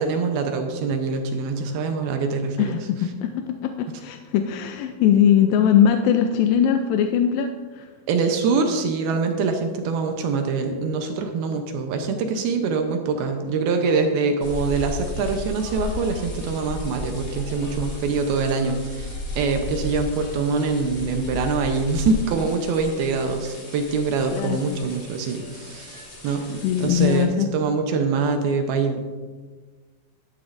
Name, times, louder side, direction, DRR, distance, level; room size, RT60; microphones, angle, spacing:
voice 1, 0.0-2.7 8.1-29.2, right 4 dB, 80° right, 5 dB, 2.6 m, -24 dB
voice 2, 2.6-7.9 24.3-24.6 26.6-27.5, left 9 dB, 80° left, 6 dB, 2.1 m, -20 dB
sound 1, 14.4-27.2, left 2 dB, 35° left, 3.0 m, -34 dB
13.5 x 11.5 x 2.6 m, 1.4 s
omnidirectional pair, 4.5 m